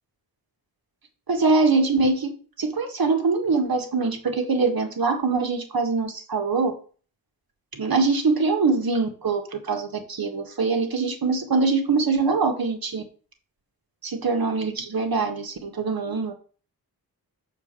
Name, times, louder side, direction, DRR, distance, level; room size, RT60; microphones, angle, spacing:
voice 1, 1.3-2.3 2.6-6.7 7.7-13.0 14.2-16.3, right 4 dB, 65° right, 4 dB, 1.9 m, -23 dB
7.2 x 4.8 x 6.8 m, 0.41 s
wide cardioid pair, 95°, 39 cm